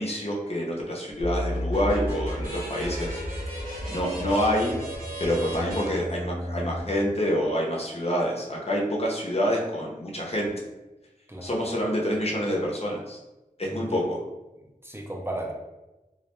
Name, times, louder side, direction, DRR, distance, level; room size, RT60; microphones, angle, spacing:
voice 1, 0.0-3.2 3.6-4.8 5.2-10.5 11.4-13.2 13.6-14.2, equal, 45° left, -2 dB, 0.6 m, -27 dB
sound 1, 1.2-6.8, equal, 70° right, 1.0 m, -32 dB
voice 2, 13.7-14.0 14.8-15.5, right 1 dB, 15° right, 0 dB, 0.5 m, -35 dB
2.3 x 2.1 x 2.9 m, 1.0 s
wide cardioid pair, 40°, 15 cm